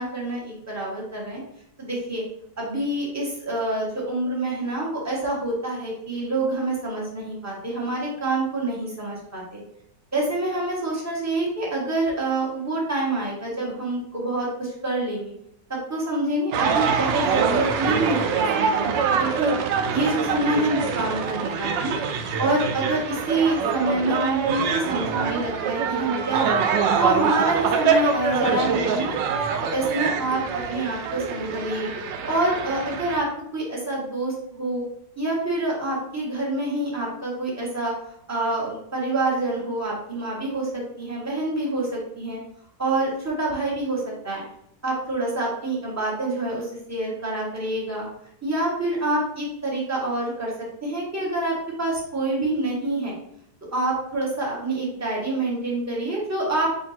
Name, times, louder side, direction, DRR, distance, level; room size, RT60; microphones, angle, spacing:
voice 1, 0.0-1.4 1.8-2.2 2.6-9.6 10.1-15.3 15.7-19.5 19.9-22.0 22.4-26.5 27.0-29.2 29.7-31.9 32.3-33.3 33.5-34.8 35.2-37.9 38.3-42.4 42.8-44.4 44.8-48.0 48.4-50.5 50.8-53.1 53.7-56.7, right 2 dB, 10° right, -5 dB, 0.9 m, -26 dB
sound 1, 16.5-33.2, right 6 dB, 75° right, 1.2 m, -25 dB
3.6 x 2.7 x 4.2 m, 0.76 s
omnidirectional pair, 2.1 m